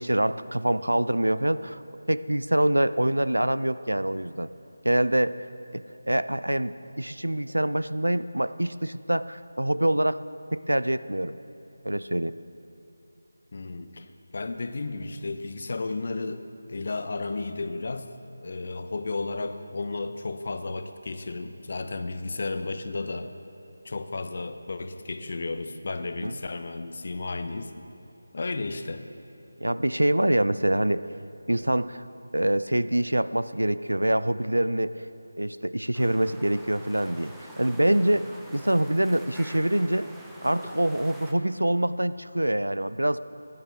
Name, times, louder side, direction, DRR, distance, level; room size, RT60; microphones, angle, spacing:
voice 1, 0.0-1.8 2.1-4.5 4.8-5.3 5.7-10.2 10.5-11.3 11.8-12.3 26.2-26.4 29.6-31.1 31.5-32.0 32.3-34.9 35.4-40.1 40.4-43.2, right 1 dB, 90° right, 15 dB, 0.4 m, -25 dB
voice 2, 13.5-16.4 16.7-18.1 18.4-23.3 23.8-27.7 28.3-29.0, left 3 dB, 45° left, 9 dB, 0.6 m, -33 dB
sound 1, 35.9-41.3, right 1 dB, ahead, 0.6 m, -46 dB
15.5 x 11.0 x 3.5 m, 2.8 s
figure-of-eight pair, 165°, 0 cm